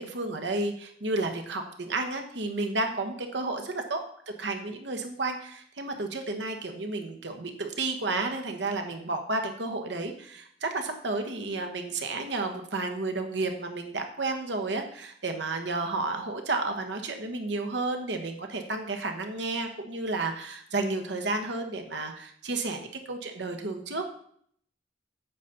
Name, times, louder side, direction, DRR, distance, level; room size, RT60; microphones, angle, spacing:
voice 1, 0.0-4.0 4.4-24.0, right 2 dB, 65° right, 5 dB, 1.3 m, -32 dB
9.2 x 4.1 x 7.0 m, 0.63 s
head